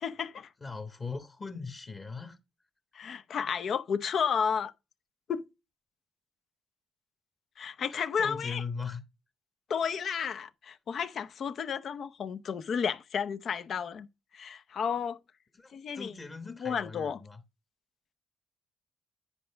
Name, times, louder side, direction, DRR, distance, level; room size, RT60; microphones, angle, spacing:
voice 1, 0.0-0.5 2.9-4.7 5.3-5.4 7.6-8.6 9.7-14.1 14.3-15.2 15.7-16.1 16.6-17.2, left 7 dB, 60° left, 0.7 m, -32 dB
voice 2, 0.6-2.4 7.9-9.0 15.5-17.4, left 4 dB, 30° left, 1.2 m, -39 dB
10.0 x 5.1 x 3.4 m
cardioid pair, 90°, 0 cm